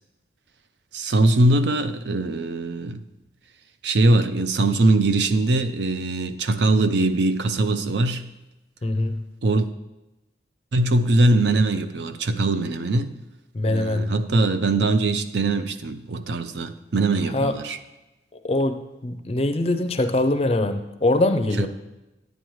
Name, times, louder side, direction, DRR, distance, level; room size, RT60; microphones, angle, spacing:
voice 1, 0.9-3.0 3.8-8.3 9.4-9.7 10.7-13.2 13.6-17.8 21.6-21.7, right 2 dB, 70° right, 0.5 m, -21 dB
voice 2, 8.8-9.2 13.5-14.1 17.3-17.6 18.4-21.7, left 2 dB, 35° left, 0.4 m, -23 dB
9.2 x 9.2 x 3.1 m
head